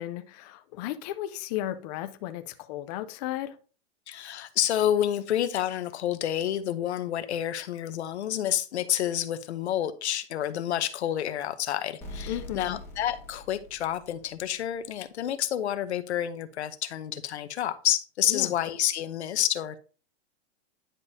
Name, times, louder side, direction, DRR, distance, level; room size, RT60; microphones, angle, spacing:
voice 1, 0.0-3.6 12.3-12.8 18.3-18.5, left 13 dB, 40° left, 0.6 m, -34 dB
voice 2, 4.1-19.8, left 11 dB, 90° left, 0.9 m, -29 dB
sound 1, 12.0-14.7, left 1 dB, 5° left, 1.7 m, -43 dB
10.0 x 5.3 x 2.7 m
supercardioid pair, 150°, 33 cm